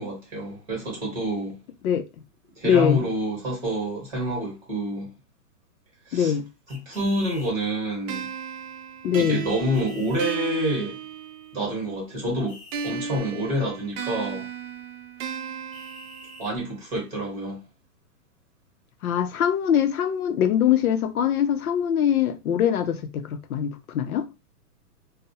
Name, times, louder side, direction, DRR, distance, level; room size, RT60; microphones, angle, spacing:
voice 1, 0.0-1.6 2.6-5.1 6.1-6.3 6.7-8.3 9.2-11.0 11.5-12.6 12.8-14.5 16.4-17.6, equal, 20° right, 1.0 m, -28 dB
voice 2, 2.6-3.1 6.1-6.5 9.0-9.5 19.0-24.3, left 9 dB, 70° left, 0.5 m, -23 dB
sound 1, 6.7-7.5 9.7-10.4 12.5-12.9 15.7-16.6, left 1 dB, 5° left, 0.7 m, -47 dB
sound 2, 8.1-11.7 12.7-16.7, right 6 dB, 60° right, 0.5 m, -35 dB
2.3 x 2.0 x 2.7 m
hypercardioid pair, 160°, 46 cm